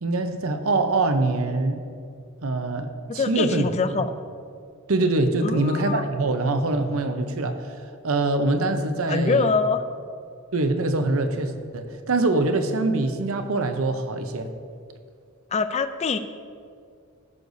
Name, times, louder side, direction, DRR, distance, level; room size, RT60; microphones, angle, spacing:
voice 1, 0.0-1.8 2.4-3.7 4.0-4.1 4.9-9.5 10.5-14.5, right 2 dB, 65° right, 7 dB, 0.7 m, -24 dB
voice 2, 3.1-4.1 5.4-6.0 9.1-9.8 15.5-16.2, left 4 dB, 30° left, 10 dB, 0.4 m, -24 dB
16.0 x 6.5 x 2.7 m, 2.3 s
head